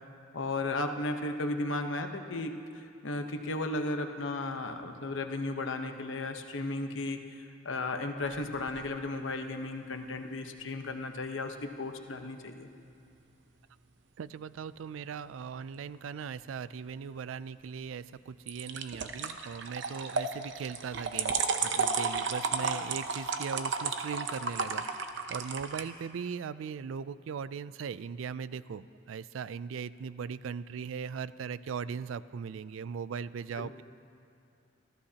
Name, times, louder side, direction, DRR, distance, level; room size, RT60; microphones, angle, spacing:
voice 1, 0.3-2.6 3.0-7.2 7.6-12.7 33.6-33.8, left 2 dB, 75° left, 5 dB, 1.0 m, -34 dB
sound 1, 8.2-8.9 18.5-25.8, right 5 dB, 65° right, 0.8 m, -33 dB
voice 2, 14.2-33.8, right 6 dB, 80° right, 17 dB, 0.4 m, -39 dB
27.0 x 14.5 x 2.9 m, 2.5 s
head